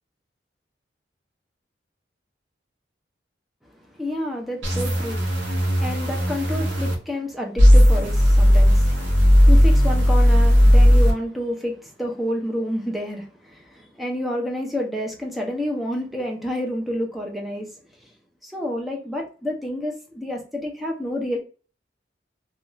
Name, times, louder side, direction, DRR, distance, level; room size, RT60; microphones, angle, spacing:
voice 1, 3.9-9.1 9.4-17.7 18.0-18.1 18.4-21.4, left 1 dB, ahead, 0.6 m, -29 dB
sound 1, 4.6-6.9 7.6-11.1, equal, 90° right, 0.9 m, -16 dB
2.4 x 2.4 x 3.0 m
head